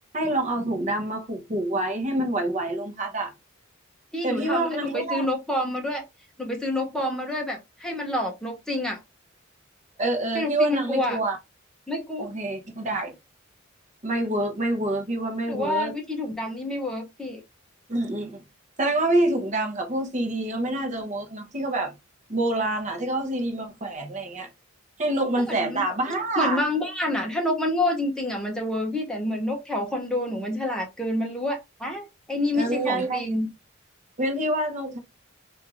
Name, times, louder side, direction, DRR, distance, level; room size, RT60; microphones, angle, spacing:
voice 1, 0.1-3.3 4.2-5.3 10.0-11.4 12.2-13.1 14.0-15.9 17.9-18.4 18.8-21.9 22.3-24.5 25.0-26.6 32.5-33.2 34.2-35.0, right 2 dB, 35° right, 0.7 m, -26 dB
voice 2, 4.1-6.0 6.4-9.0 10.3-11.2 11.9-12.3 15.5-17.4 25.5-25.8 26.4-33.5, left 1 dB, 5° left, 0.7 m, -28 dB
3.6 x 2.5 x 2.9 m
head